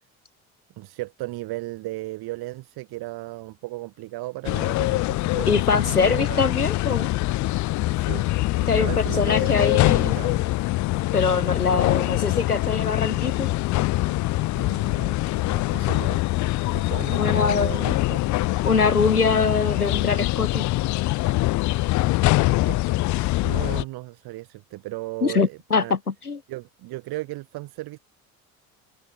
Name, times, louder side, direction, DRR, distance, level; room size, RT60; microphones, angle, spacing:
voice 1, 0.8-6.4 7.9-8.3 8.5-10.5 11.7-11.8 14.5-16.2 16.7-18.2 22.2-26.0 26.5-28.0, right 19 dB, 55° right, 5.1 m, -36 dB
sound 1, 4.4-23.8, left 19 dB, 40° left, 0.6 m, -24 dB
voice 2, 5.5-7.1 8.7-10.2 11.1-13.5 17.2-17.9 18.6-20.6 25.2-26.0 26.3-26.4, left 5 dB, 90° left, 1.5 m, -23 dB
sound 2, 6.5-21.1, left 5 dB, 25° left, 5.1 m, -46 dB
figure-of-eight pair, 55°, 44 cm